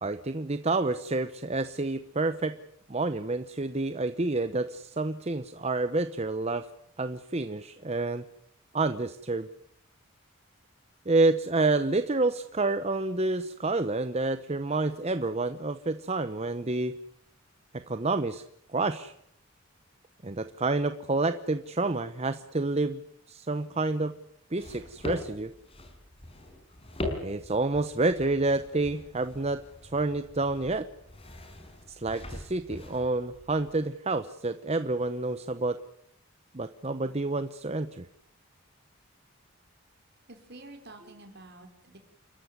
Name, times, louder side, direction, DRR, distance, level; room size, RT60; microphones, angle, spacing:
voice 1, 0.0-2.6 2.9-6.7 7.0-8.2 8.7-9.5 11.1-16.9 17.7-18.4 18.7-19.1 20.2-23.0 23.3-24.2 24.5-25.5 27.2-30.9 31.9-35.8 36.5-38.1, right 2 dB, 30° right, 11 dB, 0.9 m, -29 dB
sound 1, 24.6-33.8, left 1 dB, 25° left, 5.0 m, -42 dB
voice 2, 40.3-42.0, right 2 dB, 50° right, 5 dB, 4.9 m, -48 dB
29.5 x 14.0 x 9.6 m, 0.73 s
head